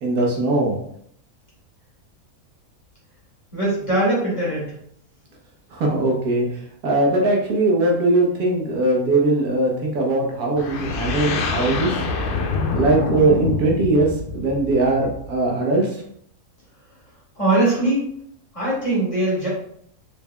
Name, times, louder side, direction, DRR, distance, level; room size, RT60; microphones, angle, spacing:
voice 1, 0.0-0.8 5.7-6.4 6.8-11.9 12.7-15.9, right 2 dB, 80° right, -2 dB, 1.4 m, -20 dB
voice 2, 3.5-4.7 17.4-18.1 18.5-19.5, right 2 dB, 20° left, -7 dB, 1.7 m, -21 dB
sound 1, 10.6-15.4, left 4 dB, 85° left, 0.4 m, -26 dB
4.6 x 3.3 x 2.3 m, 0.68 s
omnidirectional pair, 1.6 m